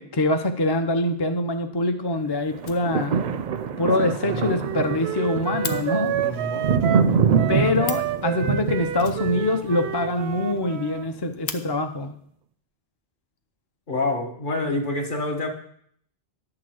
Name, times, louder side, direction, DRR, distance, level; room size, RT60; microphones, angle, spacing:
voice 1, 0.0-3.2 3.8-6.1 7.5-12.1, left 2 dB, 30° left, 6 dB, 0.5 m, -24 dB
sound 1, 2.5-10.8 11.3-11.4, right 6 dB, 55° right, 0.5 m, -25 dB
Fire, 2.6-3.4 3.7-3.8 4.1-4.2 4.5-4.6 4.8-5.8 7.5-7.6 7.8-8.2 9.0-9.9 10.2-10.3 10.6-10.7 11.1-11.6 12.6-12.7 13.4-14.0, left 7 dB, 75° left, 1.0 m, -36 dB
Wind instrument woodwind instrument, 3.8-11.1, right 10 dB, 85° right, 0.8 m, -30 dB
voice 2, 4.2-4.6 6.2-6.6 13.9-15.5, left 2 dB, 50° left, 2 dB, 1.5 m, -27 dB
11.0 x 3.9 x 7.7 m, 0.65 s
omnidirectional pair, 1.1 m